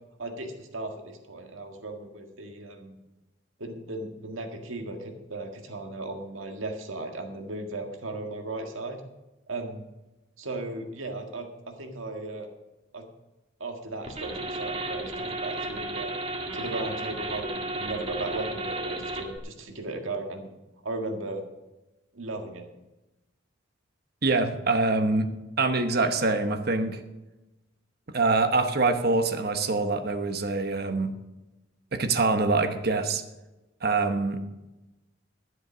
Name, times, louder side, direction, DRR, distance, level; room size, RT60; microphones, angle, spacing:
voice 1, 0.2-3.0 3.6-9.0 9.5-9.8 10.4-12.5 12.9-13.0 13.6-16.1 16.5-20.5 20.8-21.4 22.1-22.7, right 2 dB, 90° right, 4 dB, 1.8 m, -36 dB
sound 1, 14.0-19.4, right 2 dB, 30° right, 1.8 m, -33 dB
voice 2, 24.2-25.3 25.6-27.0 28.1-31.1 31.9-33.2 33.8-34.4, right 3 dB, 50° right, 8 dB, 1.0 m, -25 dB
13.0 x 7.9 x 6.2 m, 1.0 s
head